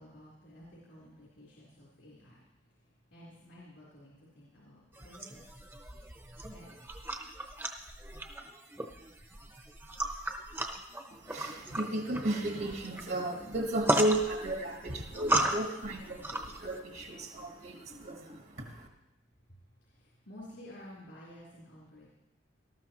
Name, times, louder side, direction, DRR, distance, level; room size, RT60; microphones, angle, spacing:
voice 1, 0.0-2.4 3.1-5.4 6.5-6.8 19.8-22.1, left 1 dB, 75° left, -7 dB, 3.5 m, -52 dB
sound 1, 4.9-16.8, right 1 dB, 10° right, 0.8 m, -36 dB
voice 2, 11.2-18.9, right 1 dB, 55° right, 2 dB, 1.3 m, -34 dB
18.5 x 13.5 x 3.0 m, 0.95 s
head